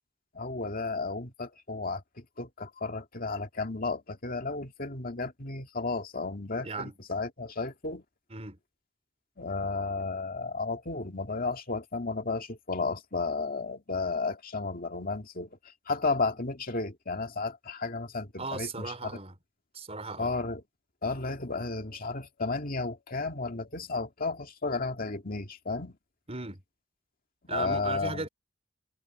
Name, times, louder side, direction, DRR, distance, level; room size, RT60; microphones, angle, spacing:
voice 1, 0.3-2.0 2.4-8.0 9.4-19.1 20.2-20.6 21.0-26.0 27.5-28.3, left 3 dB, 45° left, 2.1 m, -33 dB
voice 2, 6.6-6.9 8.3-8.6 18.4-19.4 19.7-20.3 26.3-26.6 27.5-28.3, right 3 dB, 35° right, 4.8 m, -36 dB
head